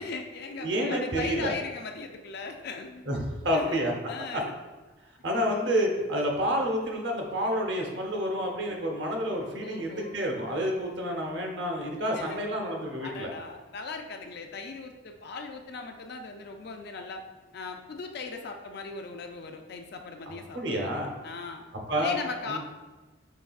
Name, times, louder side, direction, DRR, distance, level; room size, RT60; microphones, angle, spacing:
voice 1, 0.0-3.0 3.5-3.8 4.1-4.5 8.7-8.8 9.6-10.2 12.1-12.4 13.0-17.2 17.5-21.6 22.0-22.6, left 4 dB, 50° left, 5 dB, 0.4 m, -38 dB
voice 2, 0.6-1.5 3.1-3.9 4.3-4.4 5.2-13.3 20.3-21.1 21.9-22.2 22.4-22.6, equal, 60° right, 0 dB, 0.8 m, -29 dB
5.7 x 3.3 x 2.3 m, 1.2 s
head